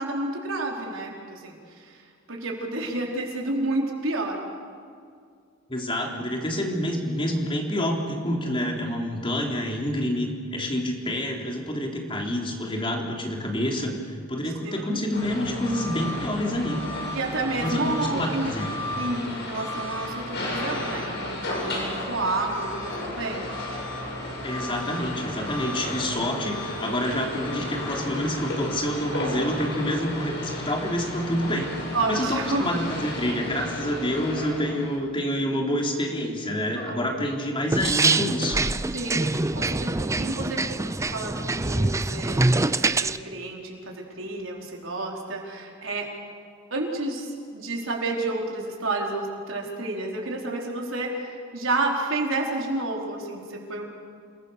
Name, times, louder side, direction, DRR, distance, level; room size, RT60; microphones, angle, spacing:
voice 1, 0.0-2.0 2.3-4.4 14.6-15.0 17.1-18.5 18.9-23.4 31.9-32.8 36.8-37.2 38.9-46.1 46.7-53.9, right 2 dB, 80° right, -1 dB, 4.6 m, -30 dB
voice 2, 5.7-16.9 17.6-18.7 24.4-31.8 32.1-38.6, equal, 25° left, 0 dB, 3.6 m, -28 dB
sound 1, 15.1-35.0, left 1 dB, 60° left, 6.9 m, -33 dB
sound 2, 37.7-43.2, right 2 dB, 15° right, 0.5 m, -24 dB
29.0 x 20.5 x 6.9 m, 2.3 s
head